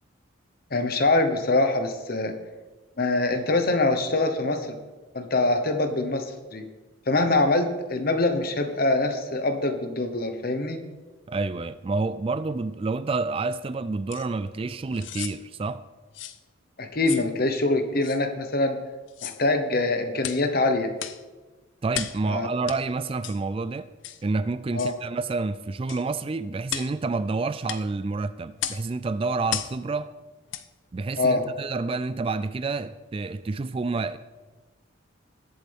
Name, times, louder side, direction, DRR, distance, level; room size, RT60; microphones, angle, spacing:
voice 1, 0.7-2.3 3.0-4.8 5.1-6.6 7.1-10.8 16.8-18.8 19.2-20.9 22.3-22.5 24.7-24.9 31.2-31.4, left 2 dB, 50° left, 1.1 m, -24 dB
voice 2, 11.3-15.8 21.8-23.9 24.2-30.1 30.9-34.2, right 3 dB, 25° right, 0.3 m, -29 dB
sound 1, 14.1-14.3 14.9-15.4 16.1-16.4 17.0-17.3 18.0-18.2 19.1-19.4 20.2-20.5 21.0-21.2 21.9-22.2 22.7-22.8 23.2-23.4 24.0-24.2 24.8-25.0 25.9-26.1 26.7-26.9 27.7-27.8 28.6-28.9 29.5-29.8 30.5-30.7 31.2-31.3, left 10 dB, 65° left, 0.6 m, -34 dB
21.0 x 7.8 x 3.5 m
head